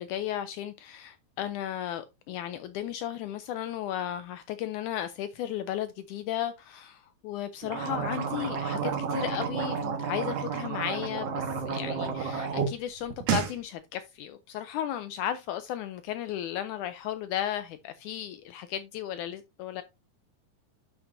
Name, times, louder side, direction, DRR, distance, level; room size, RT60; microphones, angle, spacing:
voice 1, 0.0-19.8, left 11 dB, 85° left, 1.7 m, -35 dB
sound 1, 7.6-12.7 13.0-13.5, right 6 dB, 60° right, 1.9 m, -31 dB
11.0 x 5.7 x 2.6 m
omnidirectional pair, 4.1 m